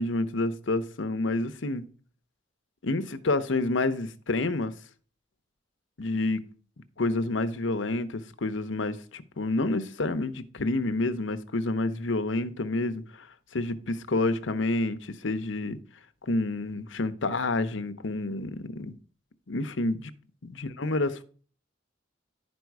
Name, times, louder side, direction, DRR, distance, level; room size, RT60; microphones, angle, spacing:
voice 1, 0.0-1.9 2.8-4.7 6.0-6.4 7.0-13.3 13.5-15.8 16.2-18.9 19.5-20.1 20.6-21.2, left 2 dB, 75° left, 0.8 m, -29 dB
11.0 x 5.2 x 4.7 m
head